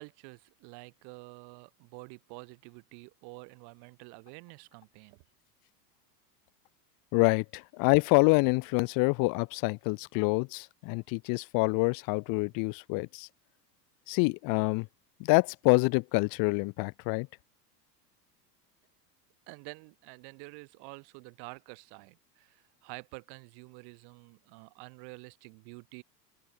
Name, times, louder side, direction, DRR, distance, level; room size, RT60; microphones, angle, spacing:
voice 1, 0.0-5.2 19.5-26.0, right 32 dB, 50° right, 1.6 m, -48 dB
voice 2, 7.1-13.3 14.1-14.9 15.2-17.3, left 29 dB, 45° left, 0.7 m, -26 dB
hypercardioid pair, 95°, 50 cm